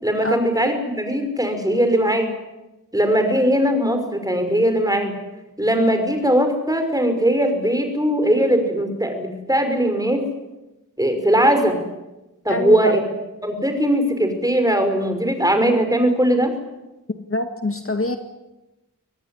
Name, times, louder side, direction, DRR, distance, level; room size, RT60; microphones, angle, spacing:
voice 1, 0.0-2.3 2.9-5.1 5.6-10.2 11.0-11.8 12.4-13.0 13.4-16.5, right 1 dB, 10° right, 7 dB, 5.7 m, -19 dB
voice 2, 12.5-12.9 17.1-18.2, left 2 dB, 40° left, 6 dB, 1.9 m, -24 dB
24.5 x 18.5 x 9.9 m, 1.0 s
wide cardioid pair, 85°, 34 cm